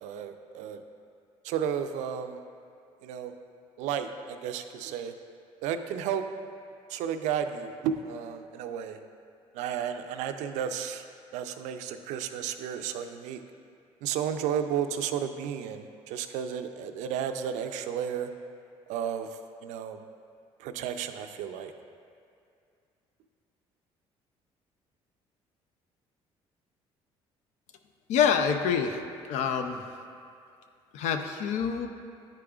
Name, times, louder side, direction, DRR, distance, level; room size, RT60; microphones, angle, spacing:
voice 1, 0.0-0.8 1.4-2.4 3.0-3.3 3.8-5.1 5.6-6.3 6.9-9.0 9.5-11.1 11.3-13.4 14.0-18.3 18.9-20.0 20.6-21.7, right 8 dB, 85° right, 8 dB, 0.4 m, -33 dB
voice 2, 28.1-29.0 29.3-29.8 30.9-31.9, left 7 dB, 80° left, 7 dB, 0.5 m, -26 dB
10.5 x 4.9 x 2.3 m, 2.4 s
cardioid pair, 90°, 12 cm